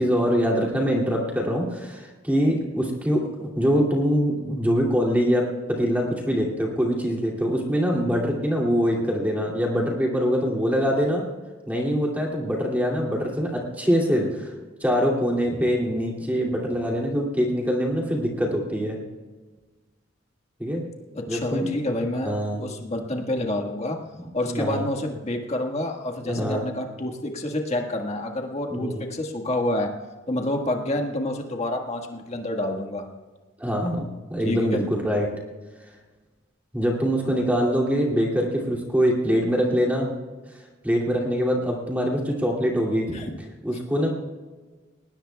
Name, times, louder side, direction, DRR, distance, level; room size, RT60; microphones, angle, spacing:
voice 1, 0.0-11.2 11.7-14.5 14.8-19.0 20.6-20.8 21.3-21.7 22.2-22.6 24.5-24.9 26.3-26.6 28.7-29.0 33.6-35.3 36.7-40.1 40.8-43.1 43.6-44.1, equal, 10° right, -2 dB, 2.6 m, -24 dB
voice 2, 21.1-24.0 24.3-29.9 30.3-33.1 34.4-34.9 43.1-43.4, left 1 dB, 35° left, 3 dB, 1.6 m, -28 dB
20.0 x 19.0 x 2.3 m, 1.3 s
head